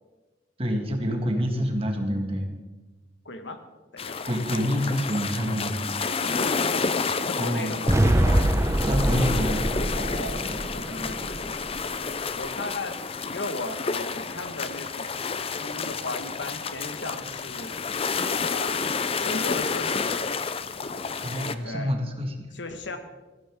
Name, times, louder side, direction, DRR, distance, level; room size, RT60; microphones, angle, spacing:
voice 1, 0.6-2.5 4.2-5.8 7.4-7.8 8.8-9.9 21.2-22.5, equal, 30° right, 3 dB, 1.9 m, -27 dB
voice 2, 3.2-3.6 3.9-4.2 4.5-4.6 6.2-6.9 7.2-7.9 9.9-11.7 12.1-17.8 18.3-18.9 19.2-20.2 21.6-21.9 22.5-23.0, left 2 dB, 85° left, 7 dB, 1.5 m, -36 dB
sound 1, 4.0-21.5, left 5 dB, 30° left, 0.6 m, -30 dB
sound 2, 7.9-12.0, right 1 dB, 15° right, 0.9 m, -24 dB
19.0 x 14.5 x 3.7 m, 1.2 s
head